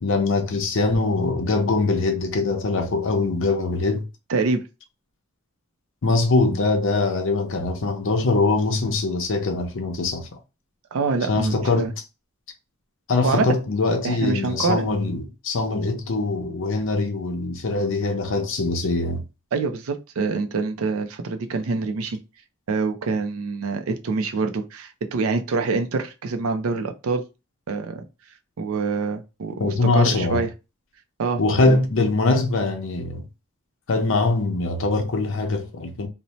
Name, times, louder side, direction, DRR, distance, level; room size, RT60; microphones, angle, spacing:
voice 1, 0.0-4.0 6.0-10.3 11.3-11.9 13.1-19.2 29.6-30.4 31.4-33.3 33.9-36.1, left 3 dB, 60° left, 0.6 m, -22 dB
voice 2, 4.3-4.6 10.9-11.9 13.2-13.5 14.0-14.9 19.5-22.2 22.7-27.2 27.7-28.0 28.6-30.5 31.2-31.8, right 4 dB, 75° right, 0.4 m, -25 dB
2.6 x 2.0 x 3.0 m
head